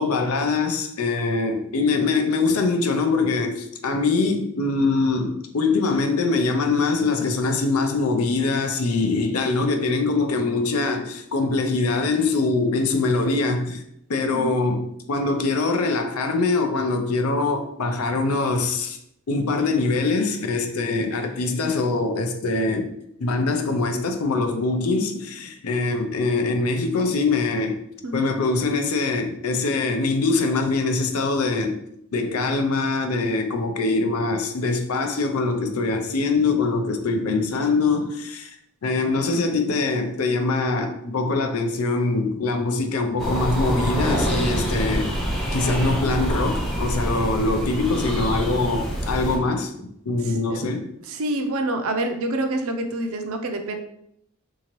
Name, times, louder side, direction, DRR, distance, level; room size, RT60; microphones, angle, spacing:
voice 1, 0.0-13.8 14.1-19.0 19.3-22.9 23.2-27.8 28.1-31.8 32.1-38.6 38.8-45.1 45.4-49.7 50.1-50.9, left 3 dB, 80° left, 0.5 m, -23 dB
sound 1, 43.2-49.4, equal, ahead, 0.6 m, -26 dB
voice 2, 51.1-53.8, right 1 dB, 70° right, 0.5 m, -26 dB
3.7 x 2.8 x 3.0 m
head